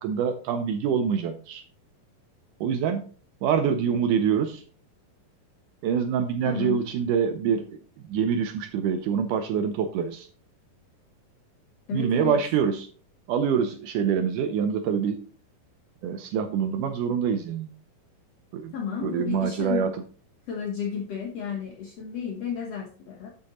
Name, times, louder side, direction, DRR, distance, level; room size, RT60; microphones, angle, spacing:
voice 1, 0.0-1.6 2.6-3.1 3.4-4.6 5.8-7.8 8.1-10.3 11.9-12.9 13.3-15.3 16.0-17.7 18.5-18.7 19.0-19.9, right 7 dB, 80° right, 8 dB, 1.9 m, -25 dB
voice 2, 6.4-6.8 11.9-12.4 18.7-19.9 20.5-23.3, left 7 dB, 65° left, 1 dB, 1.7 m, -32 dB
8.8 x 7.4 x 3.0 m, 0.40 s
omnidirectional pair, 4.2 m